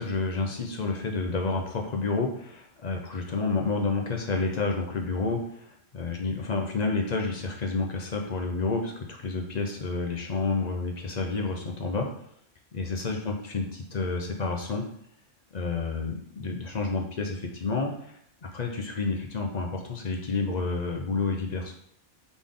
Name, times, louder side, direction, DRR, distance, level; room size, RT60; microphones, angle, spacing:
voice 1, 0.0-12.1 12.7-13.6 13.9-14.8 15.5-18.1 18.4-21.7, left 3 dB, 45° left, 1 dB, 0.6 m, -29 dB
4.1 x 3.5 x 3.6 m, 0.67 s
omnidirectional pair, 1.2 m